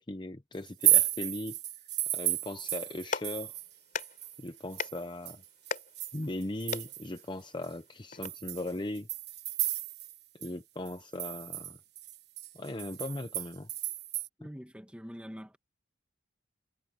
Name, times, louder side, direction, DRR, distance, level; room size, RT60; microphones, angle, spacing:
voice 1, 0.0-1.6 2.1-3.6 4.4-5.4 6.1-9.1 10.3-11.8 12.5-13.7, left 1 dB, 25° left, 0.8 m, -38 dB
sound 1, 0.7-3.7 4.0-7.2 7.6-7.7 8.2-10.2 10.4-10.5 10.9-14.3, right 14 dB, 55° right, 1.5 m, -32 dB
Clapping, 2.8-8.3, left 4 dB, 45° left, 4.2 m, -41 dB
voice 2, 14.4-15.6, equal, 5° right, 1.5 m, -44 dB
head